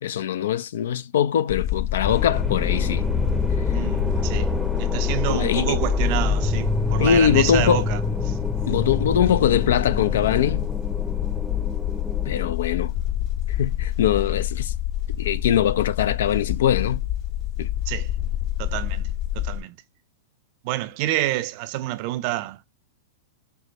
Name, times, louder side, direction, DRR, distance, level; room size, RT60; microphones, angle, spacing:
voice 1, 0.0-3.1 5.3-5.8 7.0-7.8 8.7-10.7 12.3-12.9 13.5-14.7 15.2-17.0 17.6-17.7, left 9 dB, 70° left, 0.4 m, -22 dB
sound 1, 1.5-19.6, left 12 dB, 40° left, 0.8 m, -27 dB
sound 2, 2.1-12.5, left 1 dB, ahead, 0.6 m, -28 dB
voice 2, 3.7-8.4 9.2-9.4 17.9-18.1 18.6-19.8 20.6-22.6, right 15 dB, 50° right, 0.5 m, -28 dB
4.6 x 2.1 x 3.9 m
hypercardioid pair, 105°, 0 cm